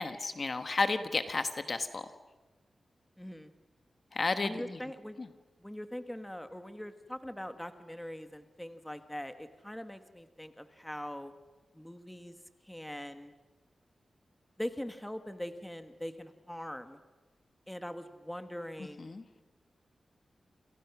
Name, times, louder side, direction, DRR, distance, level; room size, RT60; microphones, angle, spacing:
voice 1, 0.0-2.1 4.1-4.8 5.2-5.3 19.0-19.2, left 3 dB, 35° left, 9 dB, 1.2 m, -32 dB
voice 2, 3.2-3.5 4.4-5.2 5.6-11.3 11.7-12.4 12.6-13.3 14.6-17.0 17.7-19.1, equal, 5° left, 8 dB, 1.3 m, -42 dB
29.0 x 28.0 x 6.0 m, 1.2 s
wide cardioid pair, 175°, 0 cm